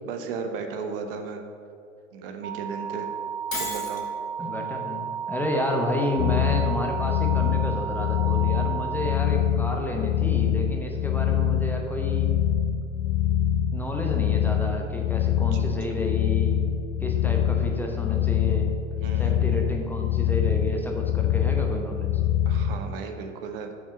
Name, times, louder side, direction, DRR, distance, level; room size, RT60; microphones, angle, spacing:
voice 1, 0.1-1.4 2.1-3.1 3.6-4.1 15.5-15.6 19.0-19.6 22.5-23.7, right 5 dB, 45° right, 5 dB, 0.9 m, -35 dB
sound 1, 2.4-9.2, right 7 dB, 85° right, 1.8 m, -33 dB
Shatter, 3.5-4.1, left 2 dB, 90° left, 1.3 m, -32 dB
voice 2, 4.4-12.3 13.7-16.6 17.0-18.7 19.2-22.1, left 1 dB, 5° left, 0 dB, 0.9 m, -31 dB
sound 2, 6.2-22.8, left 9 dB, 40° left, 0.5 m, -25 dB
6.5 x 6.2 x 7.1 m, 2.5 s
figure-of-eight pair, 90°, 39 cm